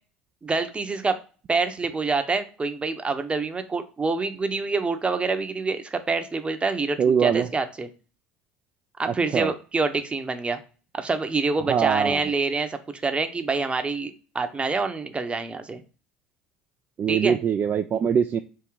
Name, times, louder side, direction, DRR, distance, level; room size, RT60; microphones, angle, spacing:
voice 1, 0.4-1.2 1.5-7.9 9.0-10.6 10.9-15.8 17.1-17.4, right 4 dB, 20° right, 8 dB, 0.8 m, -26 dB
voice 2, 7.0-7.5 9.3-9.5 11.7-12.2 17.0-18.4, right 7 dB, 40° right, 8 dB, 0.4 m, -22 dB
3.7 x 2.9 x 4.6 m, 0.36 s
hypercardioid pair, 70°, 5 cm